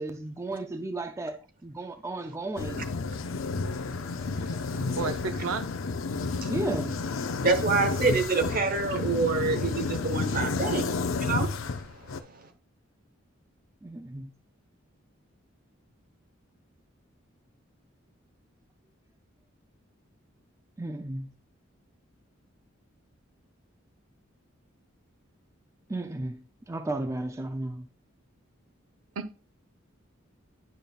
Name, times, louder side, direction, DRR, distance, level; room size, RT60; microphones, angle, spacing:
voice 1, 0.0-2.9 6.5-7.0 13.8-14.3 20.8-21.3 25.9-27.9, right 2 dB, 15° right, 0.4 m, -34 dB
sound 1, 2.6-12.2, left 4 dB, 80° left, 0.5 m, -31 dB
voice 2, 3.6-5.0 6.2-6.5 7.4-12.5, right 4 dB, 45° right, 0.9 m, -29 dB
voice 3, 5.0-5.7 29.2-29.4, right 5 dB, 90° right, 0.6 m, -32 dB
10.5 x 5.2 x 2.3 m
head